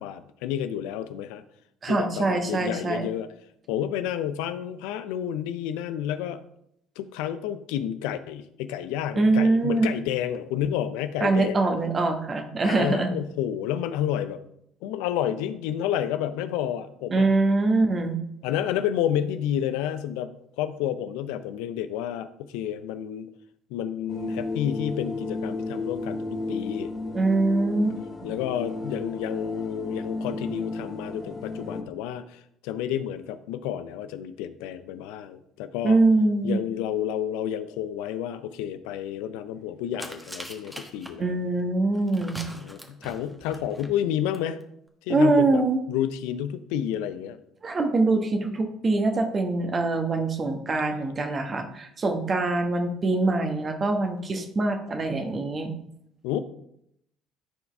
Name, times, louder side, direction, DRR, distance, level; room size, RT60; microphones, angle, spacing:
voice 1, 0.0-1.4 1.9-3.3 3.7-6.4 7.0-11.7 12.6-14.4 14.8-17.3 18.4-23.3 23.7-26.9 28.2-36.0 36.4-41.3 42.5-44.6 45.1-45.6 45.9-47.4 56.2-56.4, left 10 dB, 70° left, 12 dB, 0.5 m, -30 dB
voice 2, 1.8-3.0 9.2-9.9 11.2-13.2 17.1-18.2 27.1-28.3 35.8-36.6 41.2-42.4 45.1-45.8 47.6-55.7, right 2 dB, 35° right, 5 dB, 1.3 m, -23 dB
sound 1, 24.1-31.8, left 3 dB, 40° left, 1.2 m, -33 dB
sound 2, 39.9-41.1 41.9-43.9 44.3-44.4 44.6-44.7, equal, 5° right, 1.3 m, -41 dB
13.0 x 4.7 x 3.4 m, 0.76 s
hypercardioid pair, 55°, 0 cm